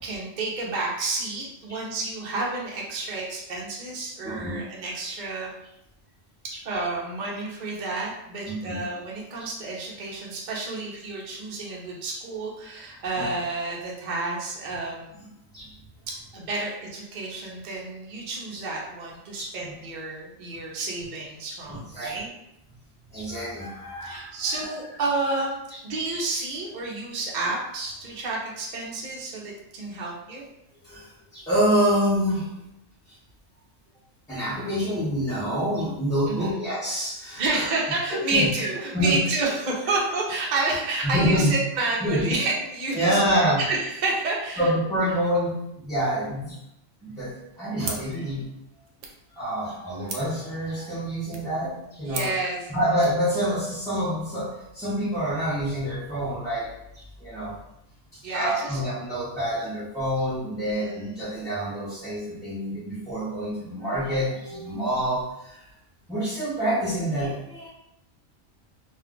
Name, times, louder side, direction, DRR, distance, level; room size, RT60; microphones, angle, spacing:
voice 1, 0.0-5.5 6.4-15.2 16.1-22.3 24.0-30.4 36.3-36.6 37.4-44.7 52.0-52.7 58.2-58.8 60.6-61.2, right 3 dB, 50° right, -3 dB, 0.6 m, -30 dB
voice 2, 4.2-4.6 6.5-6.6 8.4-8.8 13.2-13.3 15.5-15.7 19.4-19.7 21.7-22.2 23.1-24.3 30.8-32.5 34.3-37.7 38.1-38.5 38.9-39.2 41.0-41.5 42.0-42.3 42.9-43.6 44.6-46.6 47.0-48.5 49.4-52.3 52.7-57.5 58.1-65.6 66.1-67.7, equal, 5° left, -13 dB, 0.6 m, -27 dB
sound 1, 47.8-53.2, right 4 dB, 75° right, 0.9 m, -41 dB
2.4 x 2.3 x 3.6 m, 0.85 s
omnidirectional pair, 1.4 m